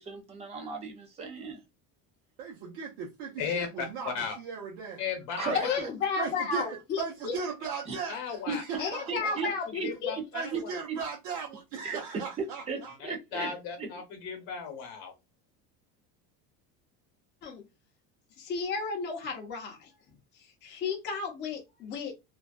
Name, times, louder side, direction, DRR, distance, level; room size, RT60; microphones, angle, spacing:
voice 1, 0.0-1.6 5.4-5.9 7.9-8.0 8.5-8.6 9.1-9.9 10.5-10.6 10.9-11.0 11.8-12.0 12.4-14.0, right 5 dB, 20° right, 0.4 m, -36 dB
voice 2, 2.4-4.1 4.4-5.0 5.4-5.5 5.8-5.9 6.2-9.4 10.3-13.0, right 6 dB, 70° right, 0.8 m, -37 dB
voice 3, 3.4-4.3 5.0-5.9 8.1-8.8 9.2-10.6 13.3-15.1, left 6 dB, 60° left, 1.0 m, -36 dB
voice 4, 5.6-7.4 8.8-10.2 17.4-17.6 18.4-19.9 20.6-22.2, left 5 dB, 30° left, 0.7 m, -33 dB
2.5 x 2.2 x 2.3 m
cardioid pair, 160°, 35 cm